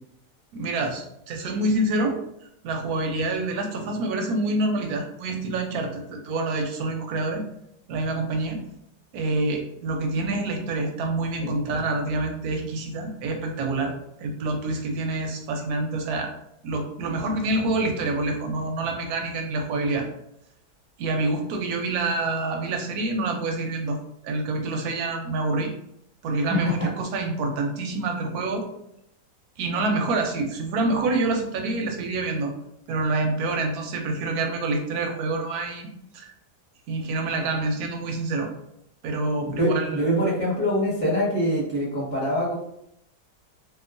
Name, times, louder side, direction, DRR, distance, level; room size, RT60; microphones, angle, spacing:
voice 1, 0.5-2.2 2.6-7.4 7.9-8.6 9.1-16.3 16.6-20.1 21.0-24.0 24.2-25.7 26.2-28.7 29.6-32.5 32.9-35.9 36.1-36.3 36.9-38.5 39.0-40.1, right 2 dB, 70° right, 3 dB, 1.0 m, -27 dB
voice 2, 26.5-26.9 39.5-42.5, equal, 5° left, -7 dB, 1.0 m, -24 dB
2.9 x 2.3 x 2.5 m, 0.76 s
omnidirectional pair, 1.8 m